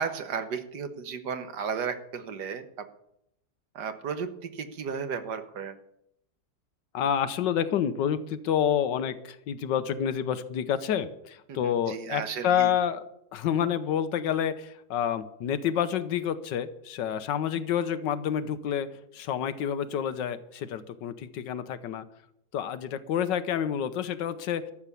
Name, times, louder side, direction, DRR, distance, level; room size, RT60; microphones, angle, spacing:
voice 1, 0.0-2.9 3.7-5.8 11.5-12.7, right 6 dB, 70° right, 9 dB, 1.7 m, -34 dB
voice 2, 6.9-13.0 13.3-18.9 19.1-22.1 22.5-24.7, left 9 dB, 85° left, 12 dB, 1.5 m, -28 dB
13.0 x 7.3 x 8.3 m, 0.77 s
omnidirectional pair, 1.9 m